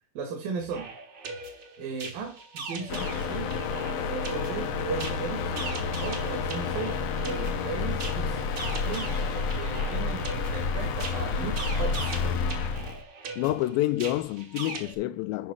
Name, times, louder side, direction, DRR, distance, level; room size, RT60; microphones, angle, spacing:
voice 1, 0.2-0.9 1.8-3.7 4.1-5.7 6.0-8.5 8.8-12.2, right 5 dB, 75° right, 3.5 m, -36 dB
sound 1, 0.6-15.0, right 3 dB, 50° right, 1.3 m, -40 dB
sound 2, 2.9-13.0, left 5 dB, 75° left, 1.5 m, -30 dB
voice 2, 13.4-15.5, left 15 dB, 90° left, 2.5 m, -28 dB
10.5 x 3.7 x 6.1 m
omnidirectional pair, 4.1 m